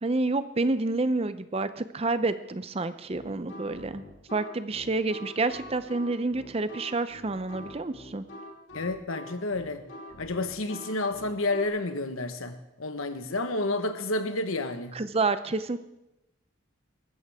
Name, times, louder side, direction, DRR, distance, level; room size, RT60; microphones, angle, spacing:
voice 1, 0.0-4.0 4.3-8.2 14.9-15.8, right 3 dB, 30° right, 12 dB, 0.5 m, -28 dB
sound 1, 3.1-11.7, left 1 dB, 60° left, 3.1 m, -45 dB
voice 2, 8.7-9.8 10.2-15.0, left 2 dB, 80° left, 8 dB, 1.3 m, -30 dB
19.5 x 15.0 x 3.6 m, 0.92 s
head